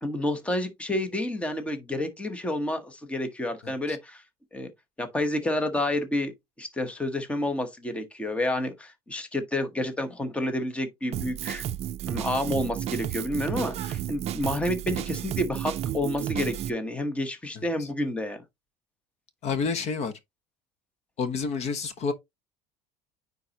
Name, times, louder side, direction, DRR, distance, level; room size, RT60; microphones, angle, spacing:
voice 1, 0.0-4.2 4.5-4.7 5.0-6.3 6.6-11.6 12.1-18.4, left 1 dB, 5° left, 1.0 m, -29 dB
voice 2, 3.6-4.0 17.6-17.9 19.4-20.1 21.2-22.1, left 5 dB, 40° left, 0.9 m, -30 dB
Drum kit, 11.1-16.7, right 11 dB, 40° right, 0.5 m, -32 dB
9.4 x 4.0 x 2.8 m
cardioid pair, 150°, 16 cm